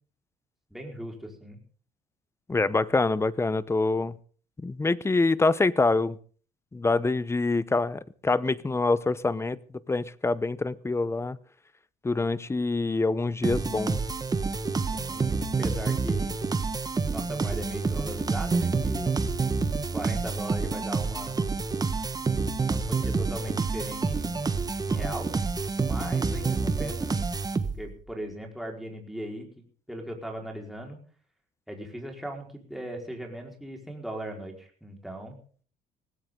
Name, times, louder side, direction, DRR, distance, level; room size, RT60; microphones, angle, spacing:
voice 1, 0.7-1.6 14.9-16.4 17.1-19.2 19.9-21.5 22.7-25.3 25.8-27.2 27.8-31.0 31.7-35.4, right 1 dB, ahead, 0 dB, 4.7 m, -39 dB
voice 2, 2.5-4.2 4.6-6.2 6.7-9.6 9.9-11.4 12.0-14.0, left 3 dB, 15° left, 18 dB, 0.8 m, -25 dB
sound 1, 13.4-28.0, right 4 dB, 20° right, 1.4 m, -28 dB
18.5 x 16.5 x 3.8 m, 0.44 s
cardioid pair, 110°, 17 cm